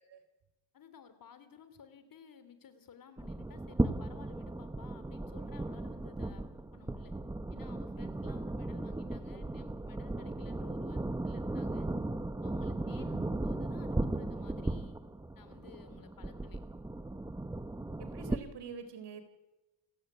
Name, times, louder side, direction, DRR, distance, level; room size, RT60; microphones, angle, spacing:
voice 1, 0.7-6.4 6.7-7.1 7.5-11.9 12.4-15.0 15.3-16.6, left 7 dB, 50° left, 11 dB, 3.4 m, -56 dB
sound 1, 3.2-18.4, right 2 dB, 10° right, 1.1 m, -36 dB
voice 2, 12.8-13.3 18.0-19.2, right 6 dB, 70° right, 10 dB, 4.6 m, -46 dB
29.0 x 15.5 x 9.4 m, 1.0 s
cardioid pair, 155°, 43 cm